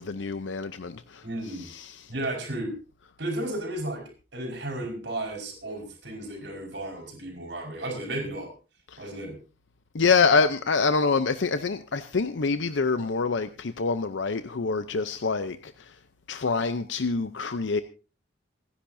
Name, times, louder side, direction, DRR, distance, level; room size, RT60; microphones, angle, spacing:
voice 1, 0.0-1.2 1.6-2.1 8.9-9.0 9.9-15.9 16.3-17.8, left 4 dB, 85° left, 0.7 m, -26 dB
voice 2, 1.2-1.7 2.1-2.7 3.2-4.0 4.3-8.5 9.0-9.3, right 1 dB, 75° right, 5.1 m, -33 dB
27.0 x 10.5 x 2.7 m
head